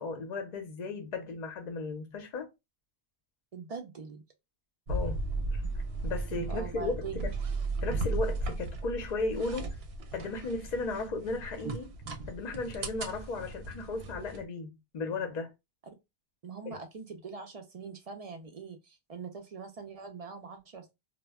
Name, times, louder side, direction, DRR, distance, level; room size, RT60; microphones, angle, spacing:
voice 1, 0.0-2.5 4.9-5.2 5.5-5.6 6.0-7.3 7.8-9.8 10.1-11.9 12.3-15.5 16.7-16.8, left 3 dB, 50° left, 0.7 m, -35 dB
voice 2, 3.5-4.2 6.5-7.2 16.4-20.9, right 5 dB, 50° right, 0.4 m, -42 dB
sound 1, 4.9-14.4, right 2 dB, 75° right, 0.8 m, -35 dB
2.1 x 2.1 x 3.4 m
omnidirectional pair, 1.0 m